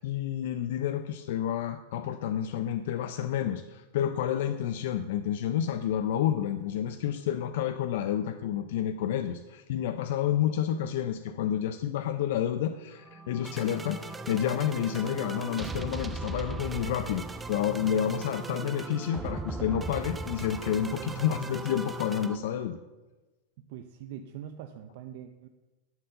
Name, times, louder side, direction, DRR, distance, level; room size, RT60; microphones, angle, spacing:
voice 1, 0.0-22.8, left 10 dB, 65° left, 9 dB, 0.5 m, -30 dB
sound 1, 13.0-22.4, right 3 dB, 10° right, 0.5 m, -38 dB
voice 2, 23.6-25.5, right 9 dB, 60° right, 7 dB, 0.6 m, -43 dB
11.0 x 4.4 x 6.6 m, 1.2 s
supercardioid pair, 135°, 0 cm